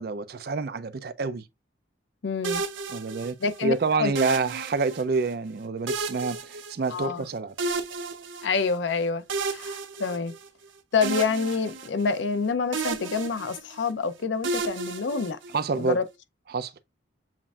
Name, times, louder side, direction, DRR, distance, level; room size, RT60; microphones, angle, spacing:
voice 1, 0.0-1.5 2.9-3.4 3.6-7.5 15.5-16.0 16.5-16.7, right 4 dB, 55° right, 0.4 m, -27 dB
voice 2, 2.2-2.6 3.4-4.1 6.9-7.2 8.4-10.3 10.9-15.4 15.8-16.0, left 4 dB, 75° left, 0.5 m, -27 dB
sound 1, 2.4-3.6 4.2-5.3 5.9-7.2 7.6-8.8 9.3-10.7 11.0-12.4 12.7-13.9 14.4-15.8, right 4 dB, 90° right, 0.7 m, -33 dB
7.3 x 2.5 x 2.3 m
head